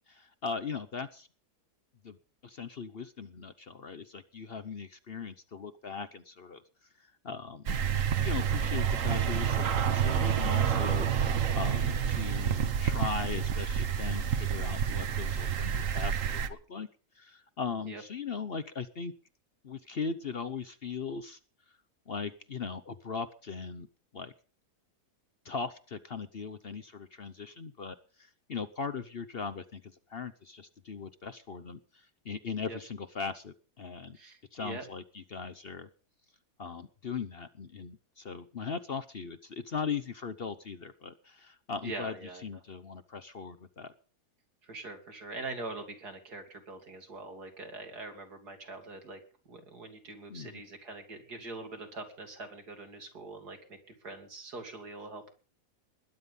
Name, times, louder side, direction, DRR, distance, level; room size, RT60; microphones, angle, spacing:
voice 1, 0.1-1.3 2.0-2.2 2.4-6.6 7.2-7.7 8.2-16.9 17.1-19.1 19.6-21.4 22.1-23.9 24.1-24.3 25.4-29.8 30.1-34.2 34.5-35.9 36.6-42.2 42.4-43.9 50.3-50.6, left 5 dB, 45° left, 10 dB, 0.9 m, -39 dB
sound 1, 7.7-16.5, right 8 dB, 55° right, 1.4 m, -29 dB
voice 2, 34.1-34.8 41.8-42.4 44.6-49.2 49.5-55.3, right 3 dB, 80° right, 4 dB, 3.5 m, -43 dB
20.5 x 9.9 x 5.4 m, 0.40 s
omnidirectional pair, 1.7 m